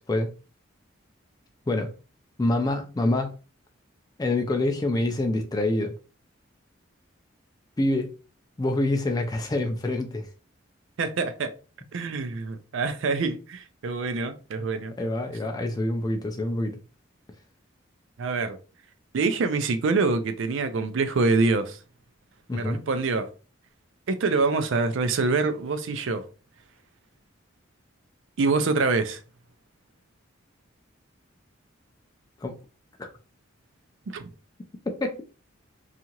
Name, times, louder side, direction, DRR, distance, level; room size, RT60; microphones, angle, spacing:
voice 1, 2.4-3.4 4.2-5.9 7.8-8.1 8.6-10.3 15.0-16.8 22.5-22.8 32.4-32.5 33.0-33.1 35.0-35.1, left 2 dB, 20° left, 0.3 m, -26 dB
voice 2, 11.0-11.5 11.9-14.9 18.2-18.6 19.1-21.8 22.5-23.3 24.1-26.2 28.4-29.2 34.1-34.3, right 3 dB, 70° right, 0.4 m, -25 dB
2.8 x 2.4 x 2.8 m
head